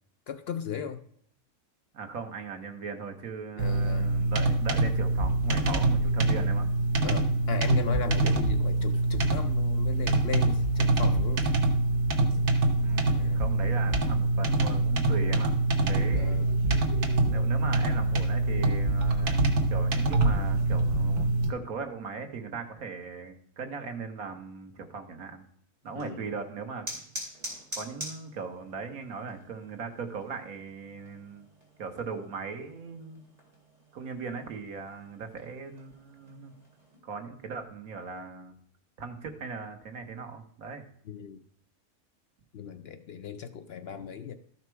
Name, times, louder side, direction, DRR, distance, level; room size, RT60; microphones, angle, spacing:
voice 1, 0.3-1.0 3.6-4.1 7.0-11.5 13.1-13.4 16.0-16.5 25.9-26.2 41.1-41.4 42.5-44.4, left 8 dB, 60° left, 8 dB, 0.7 m, -36 dB
voice 2, 1.9-6.7 12.8-16.4 17.3-25.4 25.8-26.9 27.7-31.5 31.8-33.2 33.9-36.5 37.0-38.6 39.0-40.8, right 5 dB, 90° right, 6 dB, 1.6 m, -39 dB
sound 1, 3.6-21.5, right 2 dB, 60° right, 1.4 m, -25 dB
sound 2, 25.8-37.0, equal, 25° right, 3.2 m, -46 dB
13.0 x 5.8 x 4.6 m, 0.64 s
omnidirectional pair, 1.5 m